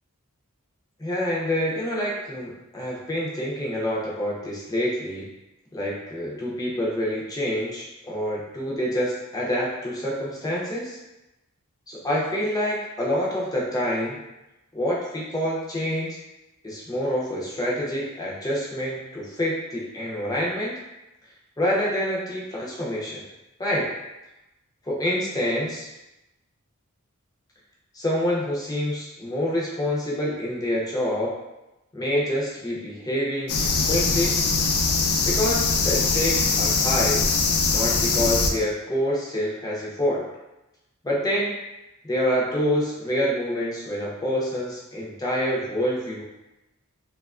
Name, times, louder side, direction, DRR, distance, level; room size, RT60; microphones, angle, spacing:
voice 1, 1.0-5.3 5.7-11.0 11.9-14.2 14.7-16.2 16.6-20.8 21.6-23.2 23.6-23.9 24.9-25.9 27.9-31.3 31.9-34.4 35.2-37.3 37.7-40.3 41.0-41.6 42.0-46.2, equal, 15° left, -4 dB, 0.5 m, -27 dB
sound 1, 33.5-38.5, left 4 dB, 70° left, 0.4 m, -22 dB
2.7 x 2.2 x 2.4 m, 0.96 s
head